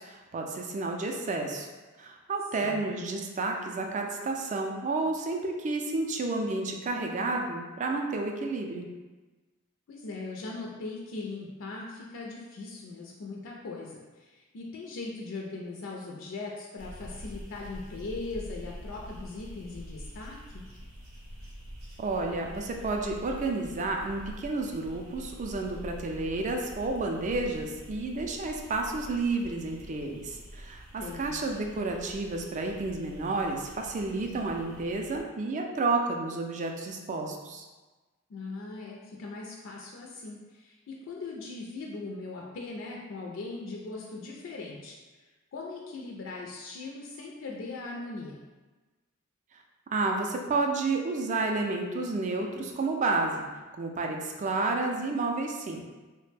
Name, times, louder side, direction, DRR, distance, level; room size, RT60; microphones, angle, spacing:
voice 1, 0.0-1.7 2.0-8.9 22.0-37.6 49.9-53.5 53.8-55.8, right 3 dB, 35° right, 2 dB, 0.3 m, -31 dB
voice 2, 9.9-20.6 31.0-31.4 38.3-48.4, left 3 dB, 65° left, -1 dB, 0.4 m, -40 dB
sound 1, 16.8-35.2, equal, 85° right, 0.7 m, -46 dB
3.1 x 2.1 x 3.2 m, 1.2 s
head